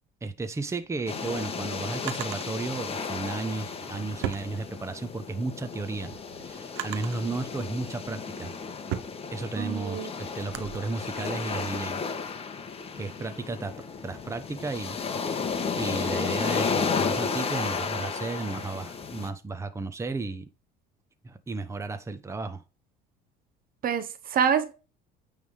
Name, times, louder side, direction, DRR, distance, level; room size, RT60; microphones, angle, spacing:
voice 1, 0.2-6.1 6.4-8.5 9.3-12.0 13.0-13.7 14.0-15.0 15.3-15.4 15.8-20.5 21.2-22.6, right 3 dB, 15° right, 0.9 m, -33 dB
Drawer open or close, 0.8-2.5 3.5-5.2 5.6-7.3 7.9-10.8, right 12 dB, 75° right, 1.1 m, -39 dB
sound 1, 1.1-19.3, left 5 dB, 30° left, 1.3 m, -33 dB
voice 2, 9.6-10.1 23.8-24.7, right 8 dB, 45° right, 1.1 m, -26 dB
9.4 x 3.6 x 4.9 m
supercardioid pair, 95°, 20 cm